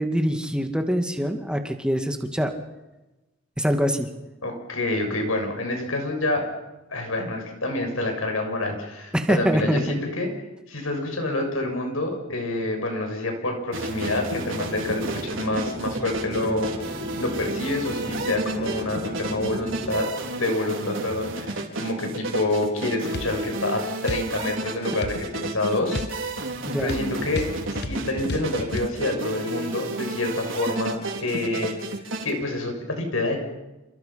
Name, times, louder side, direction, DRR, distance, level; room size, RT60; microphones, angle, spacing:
voice 1, 0.0-2.5 3.6-4.1 9.1-9.8 26.6-26.9, equal, 5° right, 5 dB, 2.2 m, -24 dB
voice 2, 4.4-6.4 6.9-10.3 10.7-16.7 17.2-26.0 26.2-26.4 26.8-31.9 32.2-33.4, left 2 dB, 85° left, 4 dB, 6.8 m, -27 dB
sound 1, 13.7-32.3, right 2 dB, 70° right, 4.3 m, -32 dB
sound 2, 14.6-20.1, equal, 25° right, 4.0 m, -36 dB
sound 3, 23.1-23.4 24.1-24.3 25.0-25.2 25.9-28.9, left 2 dB, 55° left, 1.2 m, -33 dB
28.5 x 28.0 x 5.8 m, 1.1 s
head